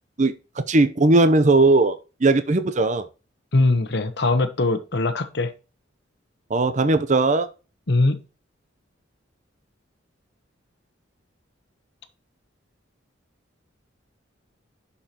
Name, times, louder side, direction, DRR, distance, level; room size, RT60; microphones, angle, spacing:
voice 1, 0.2-3.1 6.5-7.5, right 2 dB, 40° right, 0.7 m, -19 dB
voice 2, 3.5-5.5 7.9-8.2, left 2 dB, 60° left, 1.0 m, -21 dB
11.0 x 5.7 x 2.9 m
head